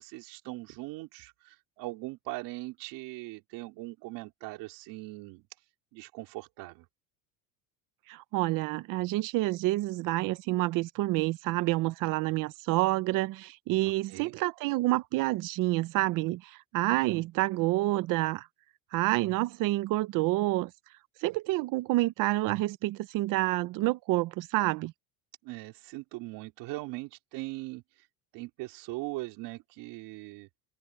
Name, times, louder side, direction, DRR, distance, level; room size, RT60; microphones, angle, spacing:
voice 1, 0.0-5.5 5.9-6.9 13.8-14.3 25.4-27.8 28.3-30.5, right 21 dB, 60° right, 4.1 m, -40 dB
voice 2, 8.1-18.5 18.9-20.7 21.2-24.9, right 18 dB, 45° right, 0.7 m, -28 dB
open air
cardioid pair, 165°, 46 cm